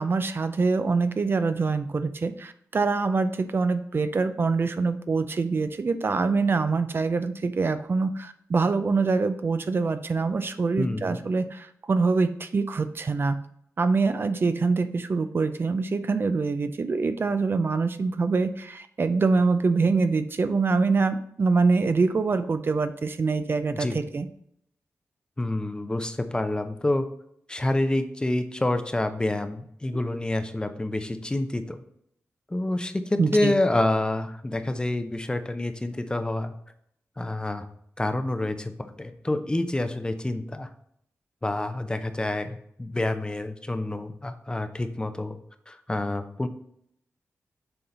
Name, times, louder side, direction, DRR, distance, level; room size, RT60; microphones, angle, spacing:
voice 1, 0.0-13.4 13.8-24.3 29.9-30.0 33.2-33.5, right 4 dB, 45° right, 10 dB, 0.5 m, -25 dB
voice 2, 10.8-11.2 23.7-24.0 25.4-27.1 27.5-31.8 32.5-36.5 37.2-37.7 38.0-40.7 41.4-45.4 45.7-46.5, left 1 dB, 15° left, 8 dB, 0.6 m, -28 dB
6.9 x 3.9 x 3.9 m, 0.71 s
wide cardioid pair, 85°, 5 cm